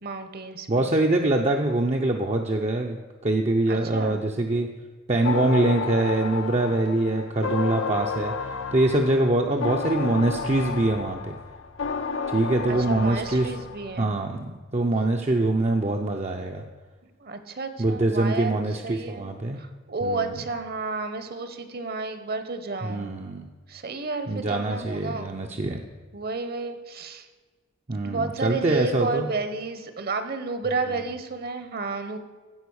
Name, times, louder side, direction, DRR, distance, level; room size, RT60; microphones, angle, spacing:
voice 1, 0.0-0.9 3.7-4.2 12.7-14.1 17.2-18.6 18.8-23.1 23.7-25.3 25.5-25.7 26.1-27.3 28.0-32.2, right 3 dB, 45° right, 9 dB, 1.0 m, -31 dB
voice 2, 0.7-4.7 5.1-11.4 12.3-13.5 14.0-16.6 17.8-19.6 20.0-20.4 22.8-23.4 24.3-25.8 27.9-29.3, right 2 dB, 30° right, 2 dB, 0.6 m, -24 dB
sound 1, 5.2-14.0, left 5 dB, 65° left, 0.7 m, -32 dB
15.5 x 5.1 x 6.3 m, 1.4 s
head